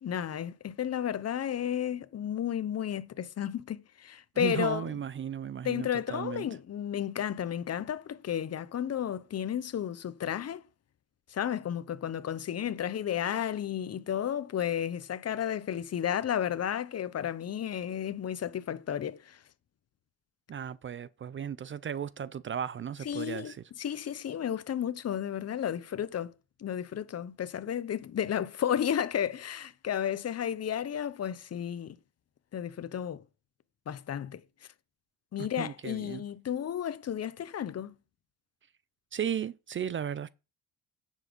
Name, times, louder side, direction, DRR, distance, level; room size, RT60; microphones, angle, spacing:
voice 1, 0.0-5.0 5.6-10.6 11.3-19.4 23.0-26.3 26.6-32.0 32.5-33.2 33.9-34.4 35.3-38.0, left 9 dB, 40° left, 0.9 m, -33 dB
voice 2, 4.4-6.5 20.5-23.6 35.4-36.2 39.1-40.3, right 8 dB, 35° right, 0.4 m, -35 dB
9.8 x 7.4 x 5.3 m
cardioid pair, 110°, 37 cm